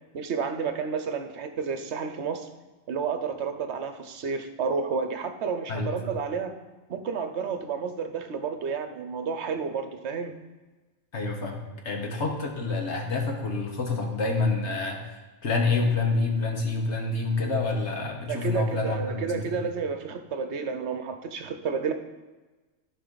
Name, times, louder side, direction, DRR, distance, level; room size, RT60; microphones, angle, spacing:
voice 1, 0.1-2.5 2.9-6.6 6.9-10.3 18.3-21.9, right 5 dB, 65° right, 8 dB, 1.0 m, -31 dB
voice 2, 5.7-6.1 11.1-15.0 15.4-19.7, left 3 dB, 60° left, 2 dB, 1.6 m, -28 dB
14.5 x 4.9 x 4.0 m, 1.2 s
omnidirectional pair, 1.3 m